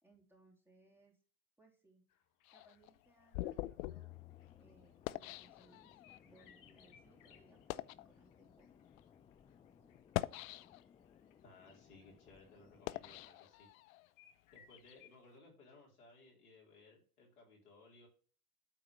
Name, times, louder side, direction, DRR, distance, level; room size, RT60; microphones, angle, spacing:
voice 1, 0.0-1.2 1.6-2.0 2.5-4.1 4.6-6.0 6.2-8.7 9.8-10.0, right 2 dB, 5° right, -2 dB, 3.1 m, -68 dB
sound 1, 2.1-15.2, left 9 dB, 45° left, 1.4 m, -69 dB
sound 2, 2.5-6.2 6.9-7.0 7.5-8.1 8.9-9.0 9.9-11.0 11.6-14.1, left 17 dB, 65° left, 0.6 m, -44 dB
sound 3, 3.9-13.3, left 7 dB, 15° left, 0.3 m, -65 dB
voice 2, 11.4-13.7 14.5-18.1, left 3 dB, 85° left, -2 dB, 4.1 m, -61 dB
9.1 x 4.2 x 5.3 m, 0.41 s
hypercardioid pair, 90°, 44 cm